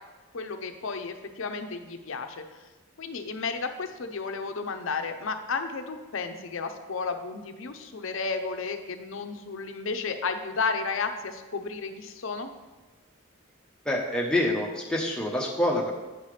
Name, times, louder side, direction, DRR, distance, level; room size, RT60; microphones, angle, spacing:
voice 1, 0.3-2.4 3.0-12.5, left 4 dB, 65° left, 7 dB, 0.6 m, -33 dB
voice 2, 13.8-15.9, left 1 dB, 5° left, -2 dB, 0.8 m, -26 dB
9.1 x 5.5 x 3.3 m, 1.2 s
head